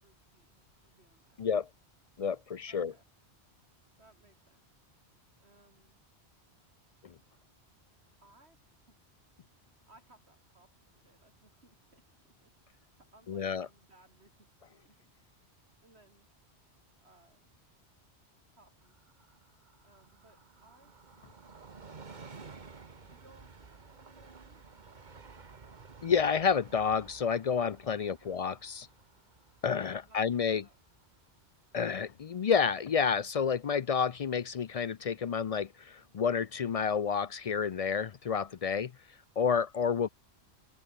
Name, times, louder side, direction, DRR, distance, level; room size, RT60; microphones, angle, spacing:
voice 1, 0.0-1.4 2.7-3.1 4.0-4.6 5.4-6.0 8.2-9.0 9.9-15.5 15.8-16.3 17.0-17.5 18.5-19.0 19.8-20.9 23.0-25.2 28.0-28.4 30.0-30.8, right 2 dB, 70° right, 4.8 m, -64 dB
voice 2, 1.4-1.7 2.2-2.9 13.3-13.7 26.0-28.9 29.6-30.6 31.7-38.9 39.4-40.1, left 6 dB, 50° left, 0.4 m, -30 dB
Train, 18.8-32.1 32.5-32.6, right 4 dB, 45° right, 1.4 m, -54 dB
open air
omnidirectional pair, 1.1 m